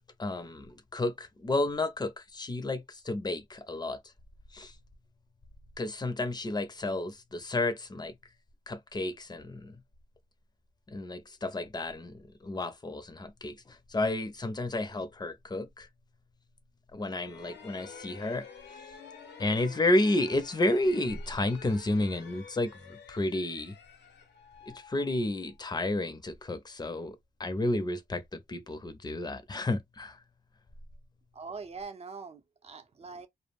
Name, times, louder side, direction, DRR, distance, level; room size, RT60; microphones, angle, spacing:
voice 1, 0.2-4.0 4.5-4.7 5.8-8.1 8.7-9.8 10.9-15.9 16.9-18.4 19.4-23.7 24.7-28.2 28.5-30.2, left 2 dB, 25° left, 0.6 m, -31 dB
sound 1, 17.1-25.7, left 6 dB, 85° left, 0.6 m, -50 dB
voice 2, 31.3-33.3, right 4 dB, 35° right, 0.7 m, -43 dB
2.2 x 2.0 x 3.4 m
cardioid pair, 80°, 17 cm